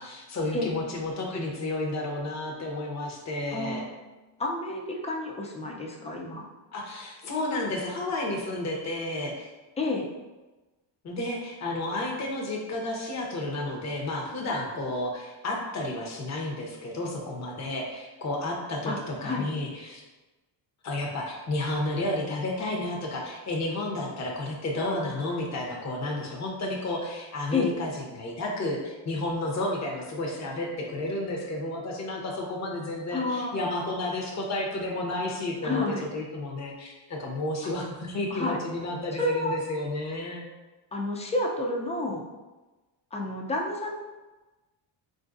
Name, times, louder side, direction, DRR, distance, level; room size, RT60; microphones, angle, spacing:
voice 1, 0.0-3.8 6.7-9.5 11.0-20.0 20.8-35.8 36.1-40.4, left 2 dB, 35° left, -1 dB, 0.8 m, -31 dB
voice 2, 3.5-3.8 4.4-6.4 9.8-10.1 18.9-19.5 27.5-27.7 33.1-33.6 35.6-36.0 38.3-38.6 39.2-39.6 40.9-42.2 43.1-44.0, left 2 dB, 15° left, 0 dB, 0.5 m, -30 dB
3.7 x 2.6 x 2.5 m, 1.2 s
cardioid pair, 90°, 48 cm